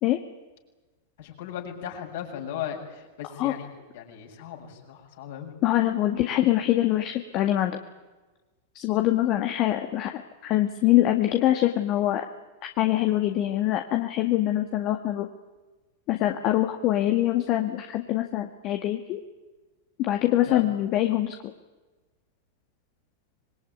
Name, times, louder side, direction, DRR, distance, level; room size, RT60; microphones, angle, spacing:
voice 1, 1.2-3.7 3.9-5.5 20.5-20.7, left 9 dB, 60° left, 1 dB, 7.1 m, -37 dB
voice 2, 5.6-7.8 8.8-10.1 10.4-12.2 12.8-15.3 16.1-19.2 20.0-21.5, left 14 dB, 40° left, 5 dB, 1.9 m, -24 dB
25.5 x 22.5 x 9.6 m, 1.2 s
figure-of-eight pair, 95°, 0 cm